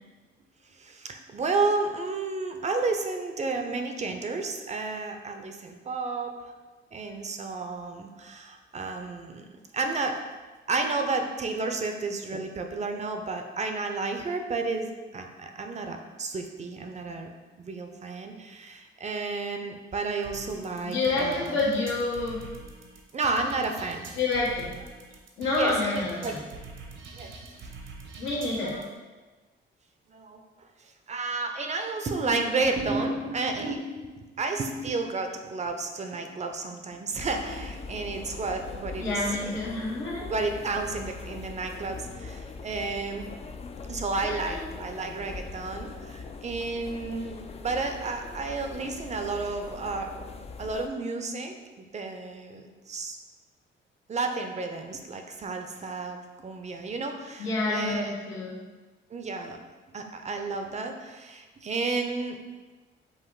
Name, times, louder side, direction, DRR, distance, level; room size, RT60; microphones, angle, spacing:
voice 1, 0.8-6.4 6.9-9.5 9.7-10.2 10.7-17.3 17.6-21.6 23.1-24.1 25.5-25.7 26.2-26.3 27.1-27.3 28.7-28.9 30.1-30.4 30.8-39.6 40.2-43.3 43.9-50.1 50.6-53.2 54.1-58.1 59.1-59.6 59.9-62.4, right 3 dB, 35° right, 5 dB, 0.5 m, -31 dB
sound 1, 20.2-28.8, right 3 dB, 70° right, 0.9 m, -45 dB
voice 2, 20.8-22.4 24.2-24.7 25.4-26.4 28.2-28.8 39.0-40.3 44.2-44.6 57.4-58.6, left 2 dB, 80° left, -5 dB, 1.4 m, -28 dB
sound 2, 37.1-50.9, left 4 dB, 30° left, 0.4 m, -41 dB
5.4 x 2.5 x 3.9 m, 1.3 s
cardioid pair, 90°, 20 cm